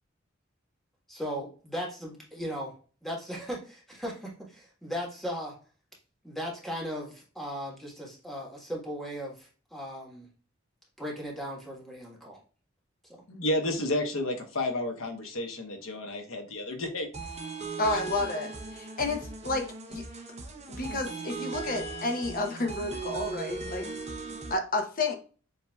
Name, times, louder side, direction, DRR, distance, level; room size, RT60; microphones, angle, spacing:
voice 1, 1.1-2.7 3.0-5.6 6.2-10.3 11.0-12.4, equal, ahead, -2 dB, 1.4 m, -37 dB
voice 2, 13.3-17.1 17.9-18.0, left 1 dB, 85° left, 4 dB, 1.1 m, -31 dB
sound 1, 17.1-24.5, right 3 dB, 35° right, 0.8 m, -38 dB
voice 3, 17.8-20.0 20.7-23.9 24.5-25.1, left 2 dB, 45° left, 5 dB, 0.9 m, -31 dB
7.5 x 2.8 x 2.3 m, 0.38 s
head